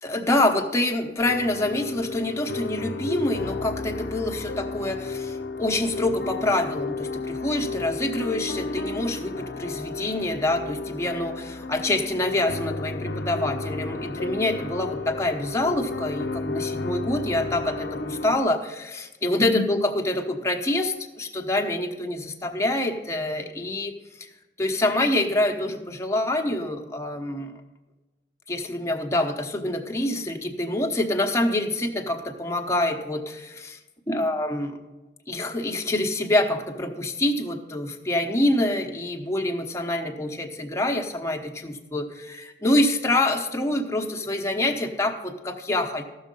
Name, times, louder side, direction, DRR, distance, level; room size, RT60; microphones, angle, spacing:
voice 1, 0.0-23.9 24.2-24.3 24.6-27.6 28.5-33.5 34.1-34.8 35.3-46.0, left 1 dB, 15° left, 2 dB, 1.0 m, -26 dB
sound 1, 1.2-18.4, left 3 dB, 80° left, 0.6 m, -33 dB
14.5 x 6.3 x 5.3 m, 1.1 s
head